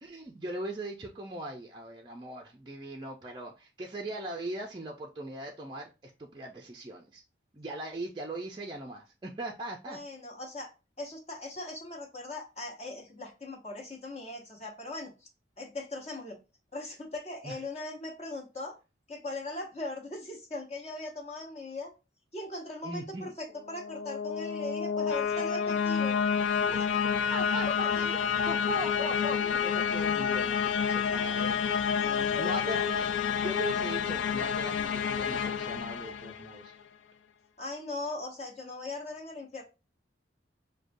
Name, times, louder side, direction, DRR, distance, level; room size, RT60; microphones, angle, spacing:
voice 1, 0.0-7.2 7.5-10.0 17.4-17.5 22.8-23.3 27.3-27.7 28.0-28.2 28.5-31.6 32.3-36.7, right 1 dB, 25° right, 1 dB, 0.4 m, -40 dB
voice 2, 9.9-10.7 11.0-15.1 15.6-16.4 16.7-18.8 19.1-21.9 22.3-26.2 26.7-27.0 27.7-27.8 32.0-32.9 37.6-39.6, left 2 dB, 35° left, 0 dB, 0.9 m, -39 dB
sound 1, 23.7-36.7, left 7 dB, 80° left, 0.3 m, -29 dB
6.2 x 2.2 x 2.6 m, 0.29 s
head